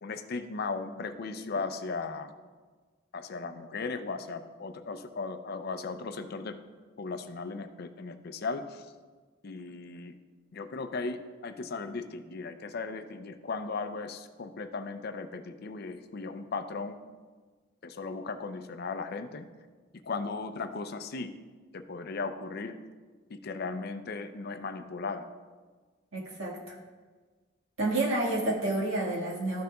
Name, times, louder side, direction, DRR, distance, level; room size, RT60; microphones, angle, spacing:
voice 1, 0.0-2.3 3.1-6.6 7.0-8.9 9.4-10.1 10.5-17.0 17.8-19.5 20.0-21.3 21.7-22.8 23.3-25.3, left 4 dB, 50° left, 9 dB, 0.5 m, -37 dB
voice 2, 26.1-26.7 27.8-29.6, right 2 dB, 80° right, -2 dB, 1.7 m, -29 dB
12.5 x 6.4 x 2.3 m, 1.4 s
head